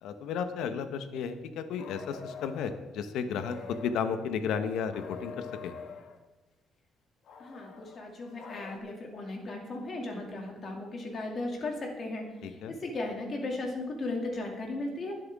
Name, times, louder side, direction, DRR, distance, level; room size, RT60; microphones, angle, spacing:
voice 1, 0.0-5.7 12.4-12.7, left 6 dB, 80° left, 9 dB, 1.0 m, -33 dB
sound 1, 1.8-2.8 3.4-4.3 4.9-6.2 7.3-8.8, left 5 dB, 60° left, 1.3 m, -45 dB
voice 2, 7.4-15.1, left 2 dB, 35° left, 1 dB, 2.4 m, -36 dB
20.0 x 7.9 x 3.6 m, 1.1 s
cardioid pair, 160°, 0 cm